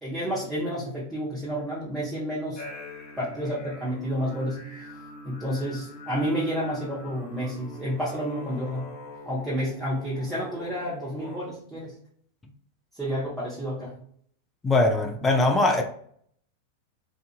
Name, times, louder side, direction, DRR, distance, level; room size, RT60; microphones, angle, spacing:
voice 1, 0.0-2.6 3.2-4.6 5.2-8.9 9.3-11.9 12.9-13.9, equal, 10° right, 1.0 m, -30 dB
sound 1, 2.5-11.4, left 2 dB, 35° left, 0.9 m, -43 dB
voice 2, 14.6-15.8, left 2 dB, 15° left, 0.5 m, -21 dB
2.6 x 2.5 x 2.4 m
figure-of-eight pair, 90°, 0 cm